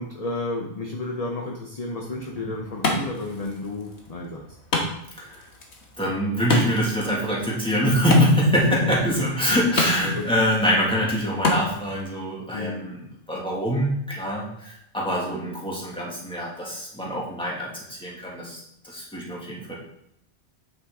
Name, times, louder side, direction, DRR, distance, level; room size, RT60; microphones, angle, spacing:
voice 1, 0.0-4.4 9.2-9.6 10.0-10.3 12.5-12.9, left 2 dB, 35° left, 1 dB, 1.0 m, -32 dB
Wood, 2.0-12.0, left 2 dB, 75° left, 1.7 m, -30 dB
voice 2, 5.2-5.5 6.0-19.8, equal, 5° left, -5 dB, 2.4 m, -24 dB
8.8 x 6.6 x 3.8 m, 0.75 s
omnidirectional pair, 1.1 m